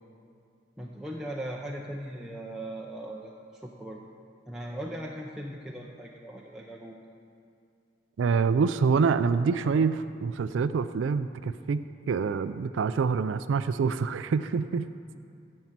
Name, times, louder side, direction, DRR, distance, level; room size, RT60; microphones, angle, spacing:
voice 1, 0.8-4.0 4.5-6.9, right 1 dB, 5° right, -3 dB, 0.6 m, -39 dB
voice 2, 8.2-14.9, right 5 dB, 85° right, 11 dB, 0.4 m, -26 dB
15.0 x 5.5 x 7.4 m, 2.5 s
head